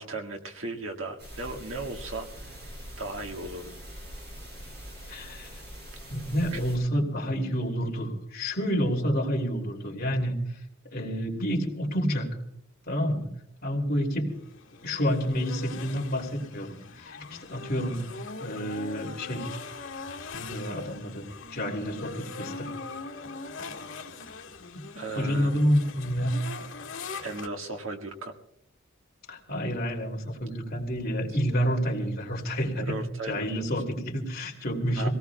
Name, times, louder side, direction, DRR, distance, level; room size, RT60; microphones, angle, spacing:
voice 1, 0.0-2.6 3.0-3.8 6.5-6.6 25.0-25.6 27.2-28.3 32.8-33.6 35.0-35.1, right 2 dB, 75° right, 3 dB, 1.8 m, -36 dB
sound 1, 1.2-6.8, equal, 55° right, 7.4 m, -43 dB
voice 2, 5.1-5.5 6.1-10.4 10.9-12.4 12.9-13.3 13.6-14.3 14.8-17.2 17.5-18.0 18.4-19.5 20.3-21.2 21.5-22.7 25.2-26.4 29.3-33.0 33.3-35.1, equal, 50° left, 1 dB, 2.9 m, -29 dB
sound 2, 14.3-27.5, left 4 dB, 85° left, 1.7 m, -41 dB
26.0 x 18.0 x 2.3 m, 0.76 s
head